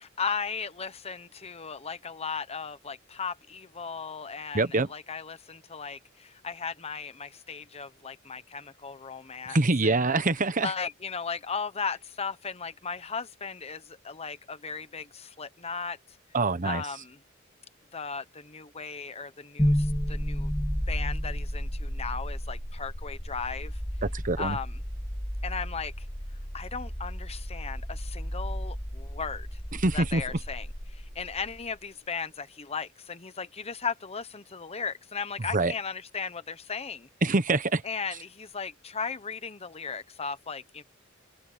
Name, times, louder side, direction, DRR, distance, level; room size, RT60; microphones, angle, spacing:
voice 1, 0.0-4.6 4.9-9.6 9.8-9.9 10.6-16.0 16.6-17.2 17.9-20.5 20.9-23.8 24.4-24.8 25.4-26.1 26.5-29.6 29.9-37.1 37.8-40.8, left 5 dB, 30° left, 1.1 m, -36 dB
voice 2, 4.5-4.9 9.5-10.7 16.3-16.8 24.0-24.6 29.7-30.2 35.5-35.7 37.2-37.8, right 3 dB, 40° right, 1.1 m, -25 dB
sound 1, 19.6-31.6, equal, 10° left, 1.9 m, -32 dB
open air
head